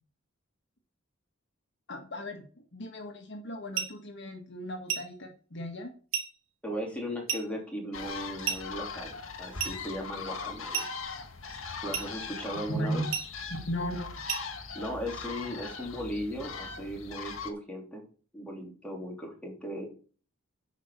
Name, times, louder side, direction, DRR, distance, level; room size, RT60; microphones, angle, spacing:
voice 1, 1.9-5.9 12.7-13.1 13.5-14.2, equal, 60° left, 4 dB, 1.6 m, -36 dB
sound 1, 3.7-4.0 4.9-5.2 6.1-6.4 7.3-7.5 8.4-8.7 9.6-9.8 10.7-11.0 11.9-12.2 13.1-13.4 14.3-14.5, right 8 dB, 90° right, 2.8 m, -33 dB
voice 2, 6.6-10.8 11.8-13.0 14.7-18.0 18.3-19.9, equal, 5° left, -1 dB, 3.2 m, -37 dB
sound 2, 7.9-17.5, left 4 dB, 90° left, 1.6 m, -40 dB
9.1 x 5.4 x 6.6 m, 0.39 s
head